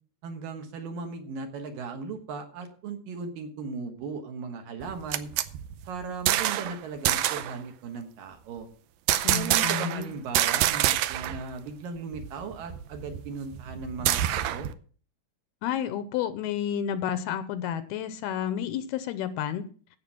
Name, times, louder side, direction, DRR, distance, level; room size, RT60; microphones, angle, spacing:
voice 1, 0.2-5.3 5.9-8.7 9.3-14.7, right 4 dB, 65° right, 5 dB, 2.7 m, -37 dB
sound 1, 4.8-6.8 7.0-7.5 9.1-10.0 10.3-11.4 11.7-11.8 12.1-14.7, right 13 dB, 90° right, 1.9 m, -26 dB
voice 2, 9.2-10.1 15.6-19.6, left 9 dB, 80° left, 12 dB, 2.5 m, -31 dB
16.0 x 6.1 x 5.9 m, 0.43 s
omnidirectional pair, 4.8 m